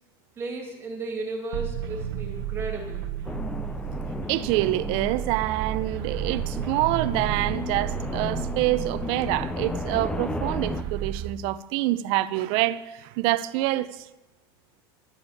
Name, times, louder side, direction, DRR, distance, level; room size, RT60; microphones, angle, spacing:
voice 1, 0.4-3.1, right 3 dB, 20° right, 2.5 m, -34 dB
sound 1, 1.5-11.3, right 10 dB, 70° right, 1.1 m, -33 dB
Keyboard (musical), 3.1-11.5, left 2 dB, 40° left, 3.0 m, -53 dB
sound 2, 3.2-10.8, left 3 dB, 5° left, 0.4 m, -34 dB
voice 2, 4.3-14.1, right 17 dB, 50° right, 0.6 m, -26 dB
11.5 x 7.0 x 9.1 m
supercardioid pair, 160°, 12 cm